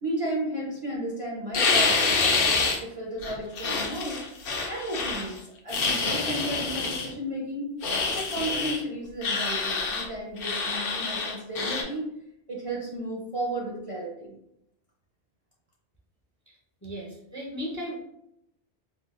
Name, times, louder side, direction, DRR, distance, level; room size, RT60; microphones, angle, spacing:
voice 1, 0.0-2.5 2.8-7.8 8.1-12.1 12.5-14.3, right 1 dB, 35° right, -4 dB, 0.6 m, -34 dB
sound 1, 1.5-2.8 3.2-5.3 5.7-7.1 7.8-8.8 9.2-10.1 10.4-11.8, left 4 dB, 60° left, 0.7 m, -27 dB
voice 2, 16.8-18.0, equal, 25° left, -4 dB, 0.5 m, -36 dB
3.7 x 2.3 x 2.4 m, 0.79 s
omnidirectional pair, 1.1 m